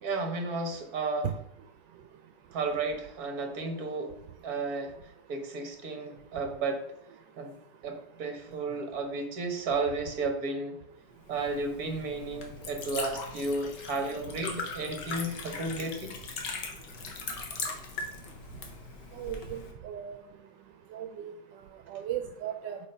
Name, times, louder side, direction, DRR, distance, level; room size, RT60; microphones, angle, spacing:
voice 1, 0.0-1.3 2.5-4.1 4.4-5.0 5.3-6.9 7.4-7.5 7.8-10.8 11.3-16.2, right 3 dB, 60° right, 5 dB, 1.7 m, -33 dB
Liquid, 11.2-19.7, left 4 dB, 75° left, 1.9 m, -40 dB
voice 2, 19.1-20.2 20.9-21.3 21.9-22.8, right 10 dB, 80° right, 5 dB, 1.3 m, -37 dB
7.5 x 5.1 x 5.5 m, 0.79 s
omnidirectional pair, 1.9 m